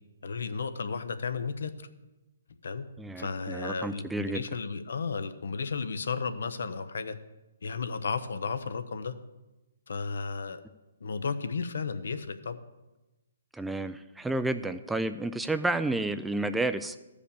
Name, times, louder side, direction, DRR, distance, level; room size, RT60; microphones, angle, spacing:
voice 1, 0.2-1.9 2.6-2.9 3.2-7.2 7.6-9.1 9.9-10.6 11.0-12.6, left 5 dB, 75° left, 10 dB, 0.8 m, -33 dB
voice 2, 3.0-4.4 13.5-16.9, right 2 dB, 5° right, 10 dB, 0.4 m, -31 dB
13.5 x 5.1 x 6.8 m, 1.0 s
hypercardioid pair, 145°, 0 cm